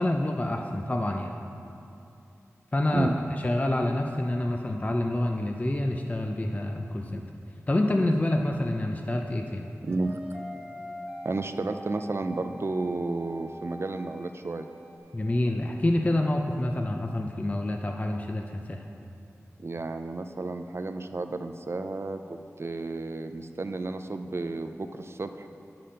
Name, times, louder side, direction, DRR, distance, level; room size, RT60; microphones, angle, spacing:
voice 1, 0.0-1.4 2.7-3.1 3.4-7.2 7.7-9.7 15.1-18.8, left 1 dB, 25° left, 3 dB, 0.5 m, -27 dB
voice 2, 9.8-10.2 11.2-14.7 19.6-22.2 22.6-25.5, right 3 dB, 50° right, 8 dB, 0.4 m, -32 dB
sound 1, 9.9-15.0, equal, 20° right, 1.1 m, -44 dB
8.5 x 5.7 x 5.1 m, 2.8 s
wide cardioid pair, 55°, 5 cm